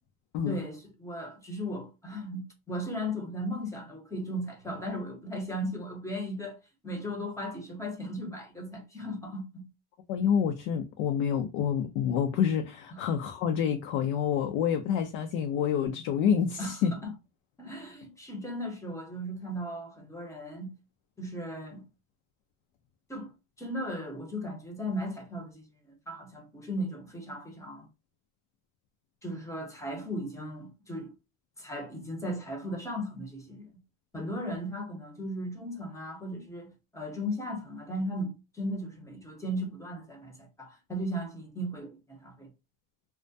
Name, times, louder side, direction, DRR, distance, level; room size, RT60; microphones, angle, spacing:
voice 1, 0.4-6.6 6.8-9.7 12.9-13.0 16.6-16.7 17.0-17.1 17.6-20.7 21.2-21.8 23.1-23.3 23.6-25.6 26.1-27.9 29.2-31.1 31.6-33.7 34.1-42.5, equal, 10° left, 0.7 m, -36 dB
voice 2, 10.1-16.9, left 8 dB, 70° left, 0.5 m, -28 dB
2.2 x 2.1 x 2.6 m
supercardioid pair, 125°, 34 cm